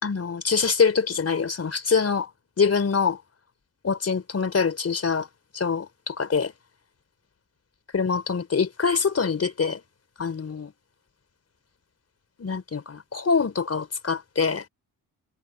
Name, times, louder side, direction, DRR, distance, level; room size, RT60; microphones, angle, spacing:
voice 1, 0.0-2.3 2.6-3.2 3.8-5.3 5.5-6.5 7.9-9.8 10.2-10.7 12.4-14.6, left 5 dB, 35° left, 4.3 m, -24 dB
cardioid pair, 70°, 40 cm